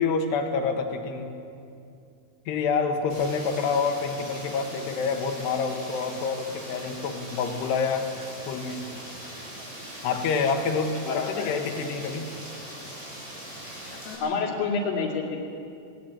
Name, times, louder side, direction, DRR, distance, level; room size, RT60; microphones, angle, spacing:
voice 1, 0.0-1.3 2.5-8.1 8.5-8.9 10.0-12.3 13.9-14.3, left 5 dB, 90° left, 5 dB, 3.7 m, -27 dB
Rain, 3.1-14.2, equal, 15° right, 7.5 m, -41 dB
voice 2, 11.1-11.5 14.2-15.4, left 4 dB, 60° left, 0 dB, 4.1 m, -28 dB
19.0 x 19.0 x 8.7 m, 2.5 s
omnidirectional pair, 4.7 m